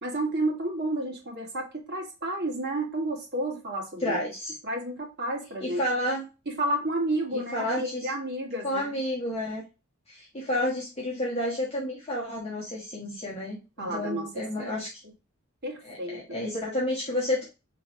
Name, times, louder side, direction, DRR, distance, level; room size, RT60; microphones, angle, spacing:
voice 1, 0.0-4.2 4.6-5.9 6.5-9.0 13.8-14.7 15.6-16.4, right 1 dB, 50° right, -1 dB, 1.6 m, -31 dB
voice 2, 4.0-4.6 5.6-6.2 7.3-8.1 8.6-9.6 10.1-14.9 15.8-17.4, left 1 dB, 30° left, -6 dB, 1.2 m, -30 dB
4.9 x 3.2 x 2.8 m, 0.29 s
head